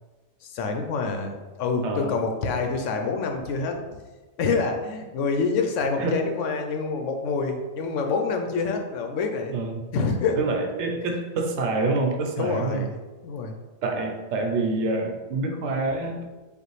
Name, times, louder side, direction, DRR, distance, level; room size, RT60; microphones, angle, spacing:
voice 1, 0.4-4.0 4.4-9.6 9.9-10.4 12.4-13.0 13.2-13.6, left 4 dB, 75° left, 4 dB, 0.9 m, -27 dB
voice 2, 6.0-6.3 9.5-9.8 10.4-12.9 13.8-16.2, right 3 dB, 70° right, 3 dB, 0.8 m, -26 dB
5.1 x 2.4 x 3.1 m, 1.2 s
omnidirectional pair, 1.3 m